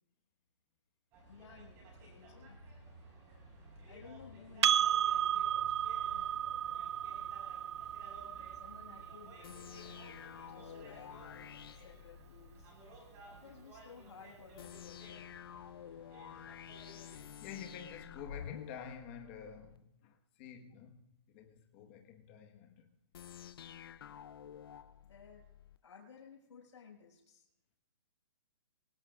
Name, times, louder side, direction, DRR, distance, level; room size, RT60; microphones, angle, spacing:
sound 1, 1.1-17.2, right 1 dB, 20° right, 4.8 m, -55 dB
voice 1, 1.3-2.6 3.9-6.8 7.0-7.2 8.5-10.0 10.4-12.7 13.3-15.3 23.4-24.2 25.0-25.5 25.8-27.4, left 6 dB, 75° left, 5.9 m, -57 dB
Percussion, 4.6-9.4, right 10 dB, 65° right, 0.4 m, -33 dB
sound 2, 9.4-12.7 14.6-19.8 23.1-25.8, left 9 dB, 50° left, 0.5 m, -50 dB
voice 2, 17.0-23.0, left 7 dB, 25° left, 1.4 m, -50 dB
23.5 x 18.0 x 2.5 m
hypercardioid pair, 170°, 15 cm